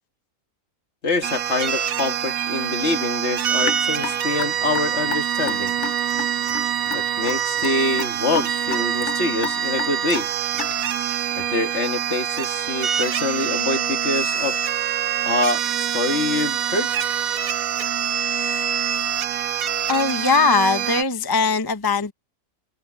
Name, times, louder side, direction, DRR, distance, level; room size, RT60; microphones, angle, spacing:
voice 1, 1.0-5.7 6.9-10.3 11.4-14.6 15.3-16.9, left 3 dB, 50° left, 2.0 m, -25 dB
sound 1, 1.2-21.0, right 9 dB, 75° right, 1.3 m, -25 dB
Raindrop / Drip, 3.6-11.0, left 8 dB, 70° left, 1.2 m, -32 dB
voice 2, 19.9-22.1, left 4 dB, 20° left, 0.8 m, -20 dB
omnidirectional pair, 1.5 m